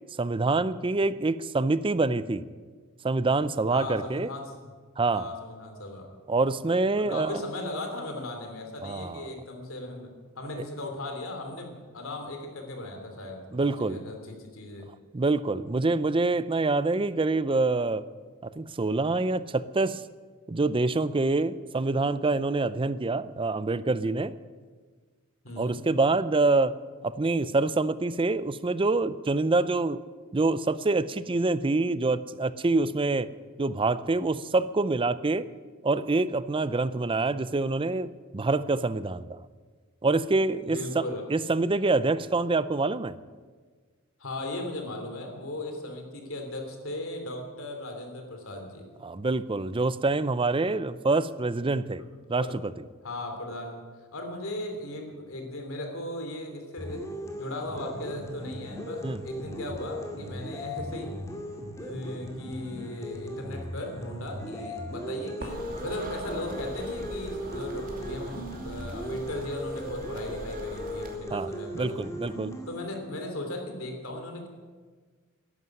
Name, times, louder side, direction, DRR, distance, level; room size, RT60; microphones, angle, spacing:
voice 1, 0.2-2.4 3.0-4.3 5.0-5.3 6.3-7.4 8.8-9.3 13.5-14.0 15.1-18.0 18.4-20.0 20.5-24.3 25.6-26.8 27.0-30.0 30.3-33.3 33.6-35.5 35.8-39.4 40.0-41.0 41.3-43.2 49.0-52.0 52.3-52.5 59.0-59.2 71.3-71.5 71.7-72.5, right 3 dB, 25° right, 15 dB, 0.5 m, -26 dB
voice 2, 3.7-4.5 5.1-6.1 7.0-10.1 10.4-14.9 25.4-25.9 40.7-41.2 44.2-48.8 52.0-52.1 52.4-52.6 53.0-53.8 54.1-57.0 57.4-61.3 61.8-72.0 72.7-74.5, left 1 dB, 70° left, 4 dB, 3.2 m, -37 dB
sound 1, 56.8-72.8, equal, 15° left, 2.2 m, -38 dB
sound 2, 65.4-71.2, right 1 dB, 40° right, 2.6 m, -41 dB
13.5 x 11.0 x 9.7 m, 1.5 s
head